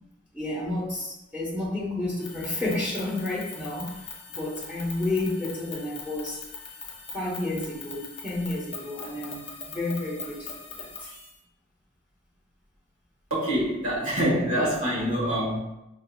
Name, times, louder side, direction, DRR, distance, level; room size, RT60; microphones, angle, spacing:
voice 1, 0.3-6.4 7.1-10.9, left 2 dB, 5° right, -7 dB, 0.9 m, -31 dB
sound 1, 2.2-11.4, left 4 dB, 30° left, 0.8 m, -42 dB
voice 2, 13.3-15.6, equal, 85° right, -5 dB, 1.4 m, -25 dB
5.6 x 2.7 x 2.3 m, 0.91 s
head